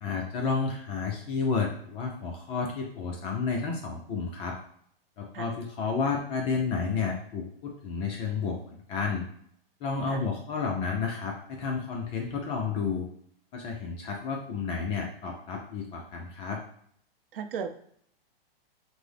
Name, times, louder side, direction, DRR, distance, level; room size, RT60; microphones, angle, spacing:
voice 1, 0.0-4.6 5.2-9.2 9.8-13.1 13.5-16.6, left 5 dB, 20° left, 1 dB, 0.4 m, -31 dB
voice 2, 17.3-17.7, right 7 dB, 65° right, 7 dB, 0.7 m, -35 dB
5.8 x 2.1 x 3.4 m, 0.67 s
hypercardioid pair, 145°, 30 cm